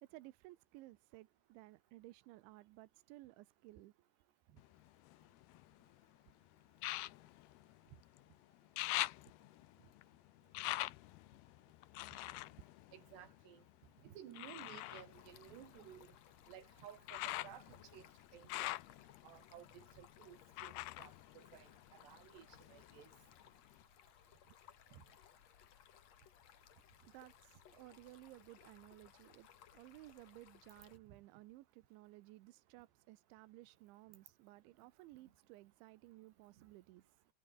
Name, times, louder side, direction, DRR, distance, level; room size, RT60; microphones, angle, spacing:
voice 1, 0.0-3.9 27.1-37.3, right 18 dB, 90° right, 3.2 m, -58 dB
sound 1, 4.6-5.9 6.8-8.3 8.5-13.7 14.3-22.2 22.5-23.3 23.8-23.9, left 18 dB, 85° left, 2.3 m, -45 dB
voice 2, 12.9-13.6 14.0-16.1 16.5-18.1 18.3-18.8 19.2-23.1 24.9-25.0 31.1-31.2 36.6-36.7, right 10 dB, 65° right, 4.5 m, -56 dB
Stream, 15.1-31.0, left 10 dB, 65° left, 1.7 m, -64 dB
omnidirectional pair, 5.4 m